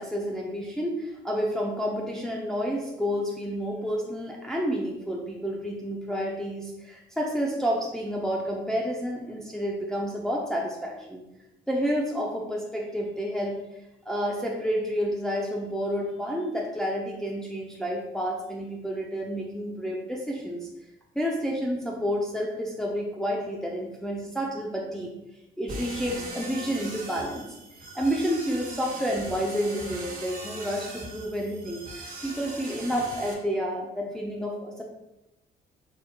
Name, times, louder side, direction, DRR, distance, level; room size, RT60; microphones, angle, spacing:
voice 1, 0.0-11.2 11.7-13.6 14.1-20.7 21.1-25.1 25.6-27.5 27.9-34.8, equal, 5° left, -2 dB, 0.7 m, -30 dB
sound 1, 25.7-33.3, right 2 dB, 45° right, 1.5 m, -40 dB
4.7 x 4.5 x 2.3 m, 0.93 s
cardioid pair, 90°, 20 cm